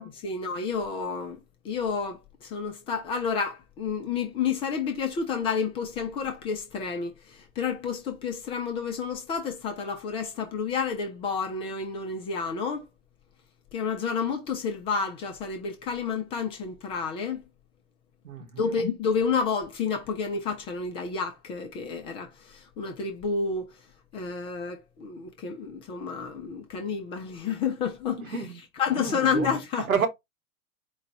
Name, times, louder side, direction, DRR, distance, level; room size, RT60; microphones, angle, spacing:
voice 1, 0.0-1.4 1.6-12.8 13.7-17.4 18.6-23.7 24.1-29.9, left 5 dB, 15° left, 0.4 m, -30 dB
voice 2, 18.2-18.8 28.2-28.6 28.9-29.5 29.8-30.1, right 6 dB, 75° right, 1.0 m, -30 dB
4.6 x 2.3 x 4.4 m
figure-of-eight pair, 95°, 42 cm